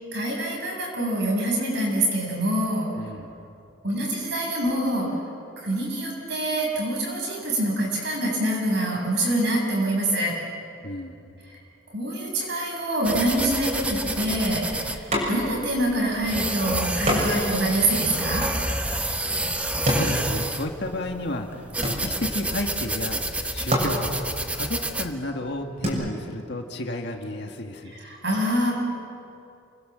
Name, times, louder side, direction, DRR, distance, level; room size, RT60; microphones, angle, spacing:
voice 1, 0.1-2.9 3.8-5.1 5.6-10.3 11.5-11.6 11.9-18.5 27.9-28.7, right 1 dB, 55° right, -1 dB, 7.8 m, -25 dB
voice 2, 2.9-3.4 10.8-11.3 19.8-24.2 24.5-27.9, left 1 dB, 55° left, 3 dB, 1.9 m, -32 dB
sound 1, 13.0-25.1, right 1 dB, 5° right, 1.0 m, -29 dB
sound 2, 15.1-15.7 16.0-16.1 17.1-21.0 21.3-22.5 23.2-23.3 23.6-25.9, equal, 35° right, 7.0 m, -28 dB
29.5 x 23.0 x 7.6 m, 2.6 s
head